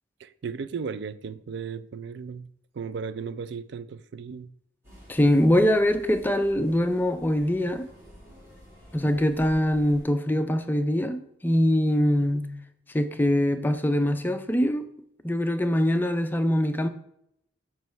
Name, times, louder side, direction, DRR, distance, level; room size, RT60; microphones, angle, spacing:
voice 1, 0.2-2.5 2.7-4.5, right 5 dB, 60° right, 0.4 m, -35 dB
sound 1, 4.8-10.0, equal, 15° right, 2.3 m, -49 dB
voice 2, 5.1-7.9 8.9-12.5 12.9-14.9 15.2-16.9, equal, 10° left, 0.4 m, -23 dB
7.5 x 3.1 x 5.7 m
head